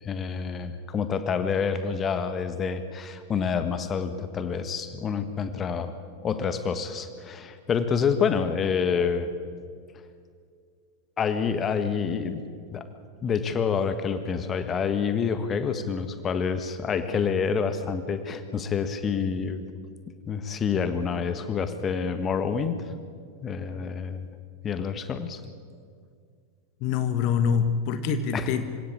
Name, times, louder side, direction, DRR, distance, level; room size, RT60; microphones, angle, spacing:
voice 1, 0.0-6.0 6.2-9.3 11.2-12.4 12.7-12.9 13.2-19.6 20.1-22.9 23.4-24.3 24.6-25.4 28.3-28.5, left 6 dB, 25° left, 10 dB, 1.6 m, -27 dB
voice 2, 26.8-28.8, left 6 dB, 45° left, 10 dB, 1.5 m, -25 dB
27.0 x 17.0 x 8.7 m, 2.1 s
figure-of-eight pair, 90°, 0 cm